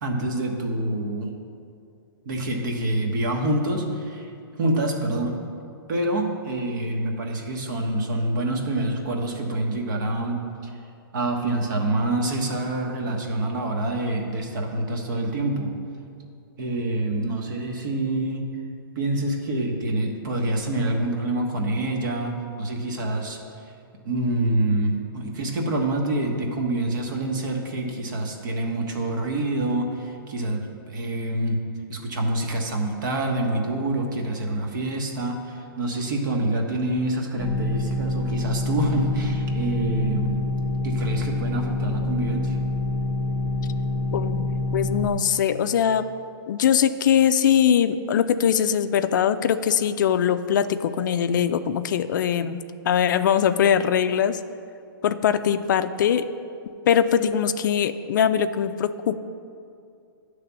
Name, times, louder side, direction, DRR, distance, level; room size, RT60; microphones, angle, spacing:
voice 1, 0.0-1.3 2.2-4.3 4.6-5.4 5.9-10.5 11.1-15.7 16.6-18.4 18.9-23.4 24.0-31.6 31.9-40.3 40.8-42.6, right 1 dB, 55° right, 2 dB, 1.2 m, -26 dB
sound 1, 37.4-45.1, left 2 dB, 20° left, 0.7 m, -26 dB
voice 2, 44.1-46.1 46.5-54.4 55.0-56.3 56.9-59.2, left 8 dB, 55° left, 11 dB, 0.4 m, -22 dB
9.9 x 3.4 x 6.9 m, 2.5 s
hypercardioid pair, 160°, 12 cm